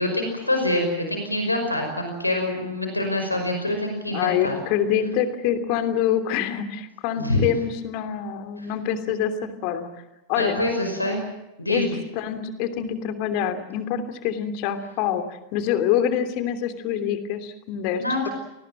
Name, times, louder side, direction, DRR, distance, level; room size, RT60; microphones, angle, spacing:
voice 1, 0.0-4.6 7.2-7.4 8.6-8.7 10.4-11.2 11.6-12.0 17.9-18.3, left 1 dB, 85° left, 3 dB, 5.4 m, -25 dB
voice 2, 4.1-9.9 10.3-10.6 11.7-15.2 15.5-18.3, left 9 dB, 45° left, 9 dB, 3.0 m, -26 dB
28.0 x 20.0 x 7.7 m, 0.97 s
figure-of-eight pair, 90°, 0 cm